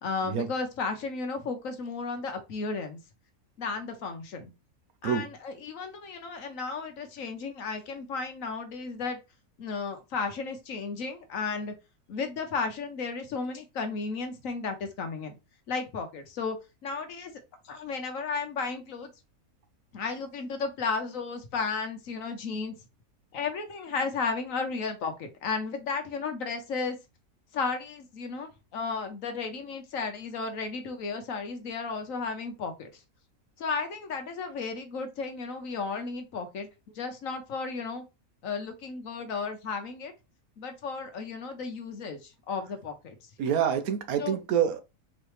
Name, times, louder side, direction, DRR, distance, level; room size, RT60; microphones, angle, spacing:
voice 1, 0.0-3.0 3.6-4.5 5.0-9.2 9.6-11.7 12.1-15.4 15.7-16.6 16.8-17.3 17.6-19.1 19.9-22.8 23.3-27.0 27.5-33.0 33.6-36.7 36.9-38.0 38.4-40.1 40.6-43.2 44.2-44.4, left 4 dB, 65° left, 1.3 m, -34 dB
voice 2, 43.4-44.8, right 8 dB, 75° right, 1.2 m, -26 dB
4.7 x 3.2 x 3.1 m
omnidirectional pair, 1.5 m